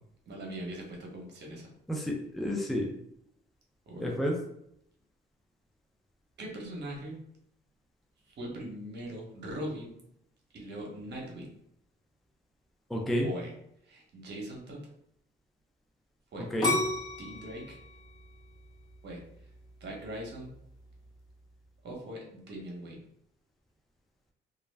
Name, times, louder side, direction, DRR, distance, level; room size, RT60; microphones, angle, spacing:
voice 1, 0.3-1.7 3.9-4.1 6.4-7.2 8.3-9.9 10.5-11.5 13.2-13.5 13.8-14.8 16.3-16.5 17.2-17.8 19.0-19.2 19.8-20.5 21.8-23.0, right 1 dB, 60° right, -1 dB, 0.9 m, -40 dB
voice 2, 1.9-2.9 4.0-4.4 12.9-13.3 16.5-16.8, equal, ahead, 0 dB, 0.5 m, -30 dB
sound 1, 16.6-19.5 20.0-20.5, left 1 dB, 20° left, 0.9 m, -32 dB
2.4 x 2.1 x 3.3 m, 0.74 s
cardioid pair, 90°, 20 cm